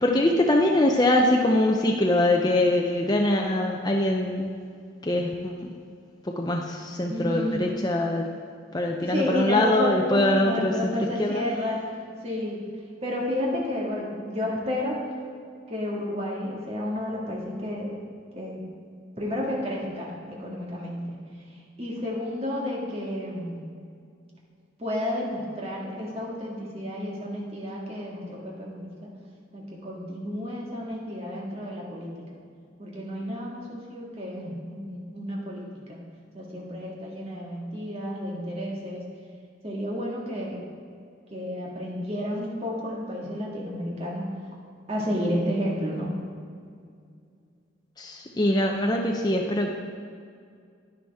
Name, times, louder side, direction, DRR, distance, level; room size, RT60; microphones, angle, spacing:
voice 1, 0.0-4.5 5.0-5.7 6.2-8.3 8.7-10.9 11.2-11.4 48.0-49.7, left 1 dB, 20° left, 0 dB, 0.6 m, -23 dB
voice 2, 7.1-7.7 9.0-11.8 12.2-12.6 13.0-15.0 15.7-18.0 18.3-18.6 19.2-21.2 21.8-23.6 24.8-28.9 29.5-32.4 32.8-36.0 36.3-39.0 39.6-40.6 41.3-44.3 44.9-46.2, left 1 dB, 30° right, -3 dB, 2.0 m, -31 dB
10.5 x 10.0 x 3.5 m, 2.3 s
head